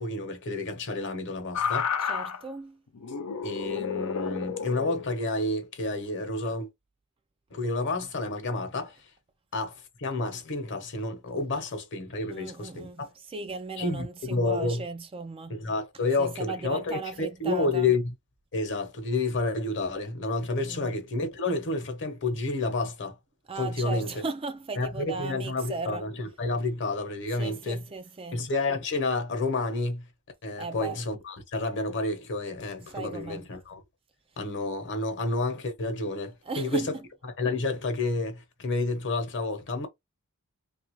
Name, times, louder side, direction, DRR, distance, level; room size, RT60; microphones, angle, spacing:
voice 1, 0.0-1.9 3.4-6.7 7.5-9.0 9.5-13.1 13.8-14.8 15.5-18.1 18.5-23.2 23.5-24.1 24.8-27.8 28.3-30.0 30.4-33.8 34.4-36.9 37.4-39.9, left 3 dB, 55° left, 0.9 m, -30 dB
sound 1, 1.5-2.4 2.9-5.1 6.3-6.5, left 7 dB, 90° left, 0.6 m, -31 dB
voice 2, 2.0-2.8 12.3-13.0 13.3-15.6 16.2-17.9 20.6-20.9 23.5-26.1 27.4-28.5 30.6-31.0 32.9-33.5 36.5-37.1, right 3 dB, 25° right, 0.4 m, -37 dB
3.2 x 2.4 x 3.0 m
head